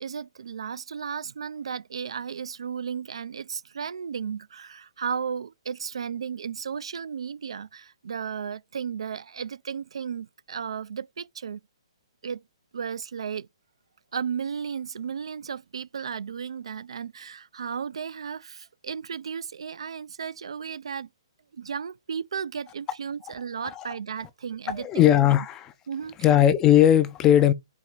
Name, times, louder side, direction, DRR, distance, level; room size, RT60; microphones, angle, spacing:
voice 1, 0.0-11.6 12.2-12.4 12.7-13.5 14.1-21.1 21.5-25.1 25.9-26.2, right 7 dB, 75° right, 0.4 m, -34 dB
voice 2, 24.7-25.7 26.2-27.5, left 11 dB, 15° left, 0.4 m, -18 dB
4.6 x 2.9 x 3.9 m
hypercardioid pair, 165°, 3 cm